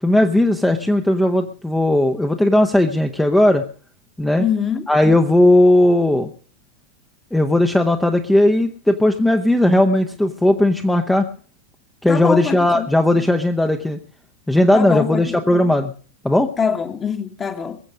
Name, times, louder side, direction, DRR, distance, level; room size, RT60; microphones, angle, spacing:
voice 1, 0.0-3.6 4.2-4.4 4.9-6.3 7.3-11.2 12.0-14.0 14.5-15.9 16.2-16.5, left 1 dB, 5° left, 1.0 m, -16 dB
voice 2, 4.4-4.8 12.1-12.9 14.7-15.5 16.6-17.8, left 7 dB, 20° left, 1.6 m, -23 dB
21.5 x 7.8 x 6.4 m
figure-of-eight pair, 90°, 0 cm